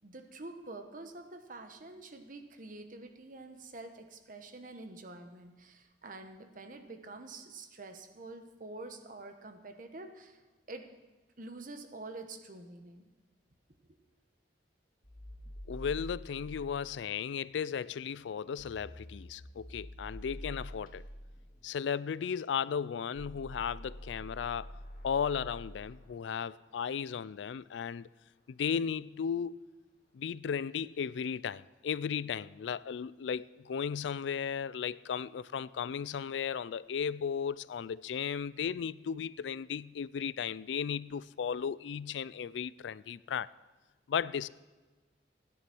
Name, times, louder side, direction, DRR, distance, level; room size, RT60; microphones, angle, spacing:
voice 1, 0.0-10.4 10.7-10.9 11.4-13.1 13.9-14.0, right 2 dB, 45° right, 1.2 m, -47 dB
sound 1, 15.0-26.3, equal, 50° left, 2.2 m, -48 dB
voice 2, 15.7-21.0 21.6-24.8 25.0-28.1 28.5-29.6 30.1-43.5 44.1-44.5, left 7 dB, 75° left, 0.4 m, -35 dB
16.0 x 9.9 x 6.1 m
head